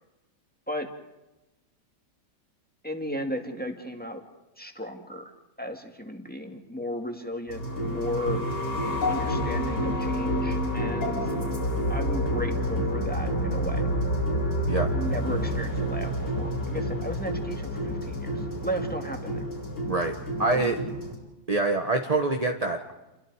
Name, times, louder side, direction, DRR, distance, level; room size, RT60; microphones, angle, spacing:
voice 1, 2.8-4.2 4.6-5.3 5.6-8.4 9.1-11.3 11.9-13.9 14.9-19.5 20.4-20.7, equal, 5° left, 4 dB, 2.0 m, -35 dB
sound 1, 7.5-21.1, equal, 80° left, 6.1 m, -28 dB
voice 2, 20.4-20.8 21.5-22.9, right 2 dB, 25° right, 3 dB, 1.3 m, -25 dB
29.0 x 23.0 x 4.9 m, 1.0 s
omnidirectional pair, 1.8 m